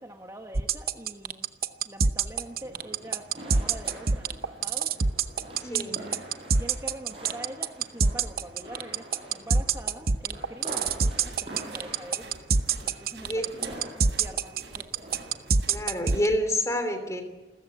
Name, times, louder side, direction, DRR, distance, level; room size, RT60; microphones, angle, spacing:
voice 1, 0.0-1.5 1.8-4.9 5.6-6.2 6.6-12.3 12.8-14.9, right 1 dB, 20° right, 4 dB, 1.4 m, -44 dB
sound 1, 0.5-16.3, right 5 dB, 55° right, 0.9 m, -24 dB
sound 2, 2.4-15.7, right 1 dB, 35° right, 8.0 m, -45 dB
voice 2, 5.7-6.0 13.2-13.7 15.7-17.2, left 1 dB, 20° left, 8 dB, 3.2 m, -28 dB
sound 3, 10.6-16.3, right 2 dB, 80° right, 7.3 m, -48 dB
28.5 x 15.0 x 9.5 m, 1.1 s
head